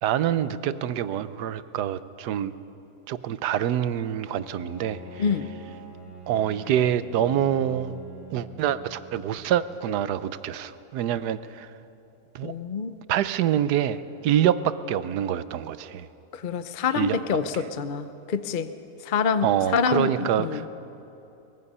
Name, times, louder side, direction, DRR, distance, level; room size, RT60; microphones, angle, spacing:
voice 1, 0.0-2.5 3.1-5.2 6.3-7.9 8.3-11.7 12.3-12.5 13.1-16.1 16.9-17.2 19.4-20.7, right 10 dB, 80° right, 14 dB, 1.2 m, -26 dB
Bowed string instrument, 4.3-9.7, right 2 dB, ahead, 6.9 m, -45 dB
voice 2, 12.4-12.9 16.3-18.7 19.0-20.7, left 6 dB, 55° left, 11 dB, 0.5 m, -26 dB
24.0 x 21.5 x 5.5 m, 2.9 s
omnidirectional pair, 1.7 m